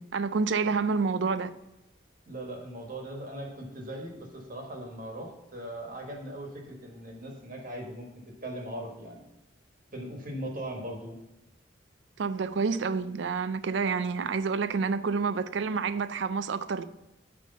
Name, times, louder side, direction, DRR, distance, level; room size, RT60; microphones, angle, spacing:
voice 1, 0.0-1.5 12.2-16.8, right 5 dB, 70° right, 0.4 m, -28 dB
voice 2, 2.3-8.1 8.4-9.2 9.9-11.2, right 1 dB, 45° right, 1.4 m, -39 dB
9.4 x 3.3 x 6.6 m
head